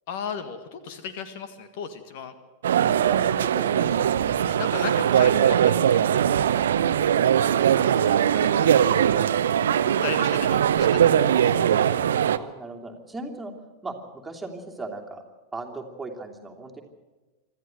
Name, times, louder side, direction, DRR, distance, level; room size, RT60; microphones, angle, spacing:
voice 1, 0.1-2.3 4.4-6.2 8.0-8.7 10.0-11.5, left 6 dB, 50° left, 11 dB, 1.7 m, -36 dB
sound 1, 2.6-12.4, right 9 dB, 60° right, 0.8 m, -21 dB
voice 2, 3.1-4.1 12.2-13.5 13.8-15.2 15.5-16.8, right 3 dB, 10° right, 1 dB, 2.9 m, -37 dB
25.5 x 14.0 x 7.9 m, 1.3 s
figure-of-eight pair, 90°, 0 cm